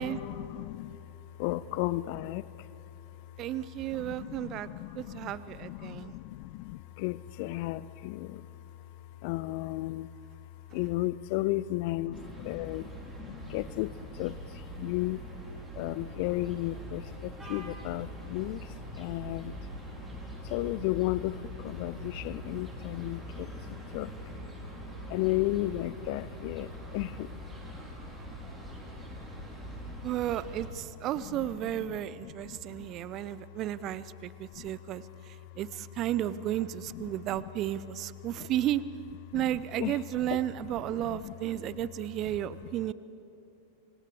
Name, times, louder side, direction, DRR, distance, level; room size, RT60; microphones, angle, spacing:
voice 1, 0.0-30.1 31.1-33.6 34.1-35.6 36.9-37.5 38.4-38.5 39.3-41.3 41.7-41.9 42.2-42.4, left 16 dB, 45° left, 19 dB, 0.5 m, -36 dB
voice 2, 3.4-4.7 4.9-6.1 30.0-35.0 35.6-38.8 39.3-42.9, right 12 dB, 35° right, 17 dB, 0.6 m, -33 dB
sound 1, 12.1-30.7, right 1 dB, 15° right, 4.3 m, -43 dB
29.0 x 24.5 x 4.9 m, 3.0 s
figure-of-eight pair, 90°, 0 cm